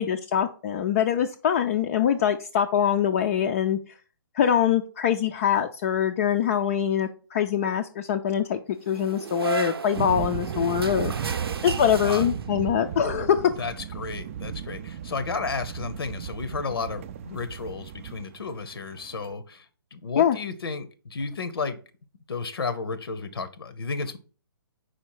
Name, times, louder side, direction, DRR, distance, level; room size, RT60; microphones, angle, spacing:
voice 1, 0.0-3.8 4.3-8.6 8.9-11.1 11.6-13.4 20.2-20.4, left 9 dB, 35° left, 5 dB, 0.4 m, -23 dB
sound 1, 8.9-12.8, right 6 dB, 85° right, 0.7 m, -34 dB
sound 2, 10.0-19.3, right 8 dB, 35° right, 0.4 m, -35 dB
voice 2, 13.6-19.6 19.9-21.8 22.3-24.2, left 4 dB, 85° left, 12 dB, 0.9 m, -32 dB
4.9 x 4.4 x 4.7 m, 0.37 s
hypercardioid pair, 150°, 12 cm